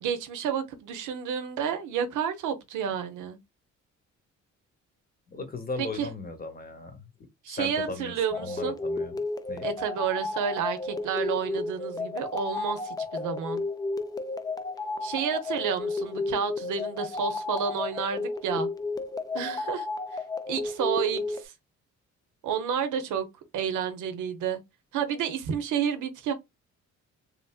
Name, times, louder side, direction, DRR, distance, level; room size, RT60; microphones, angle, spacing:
voice 1, 0.0-3.4 5.8-6.1 7.4-8.8 9.6-13.6 15.0-18.7 19.3-19.9 20.5-21.5 22.4-23.3 23.5-24.6 24.9-26.3, right 7 dB, 85° right, 0.7 m, -30 dB
voice 2, 5.3-7.1 7.5-9.2 9.5-9.7, left 3 dB, 30° left, 0.9 m, -37 dB
sound 1, 8.3-21.4, left 3 dB, 15° left, 0.3 m, -33 dB
3.1 x 2.5 x 2.3 m
cardioid pair, 90°, 30 cm